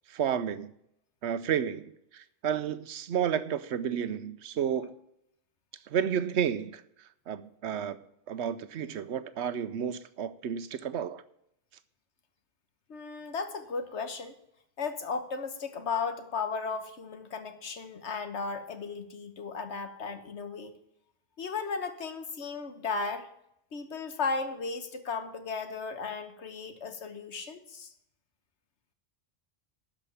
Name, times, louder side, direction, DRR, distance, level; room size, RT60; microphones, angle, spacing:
voice 1, 0.1-0.7 1.2-4.9 5.9-11.2, right 8 dB, 80° right, 1.0 m, -32 dB
voice 2, 12.9-14.3 14.8-20.7 21.4-23.3 23.7-27.9, left 4 dB, 90° left, 1.5 m, -35 dB
12.5 x 5.2 x 8.6 m
omnidirectional pair, 1.1 m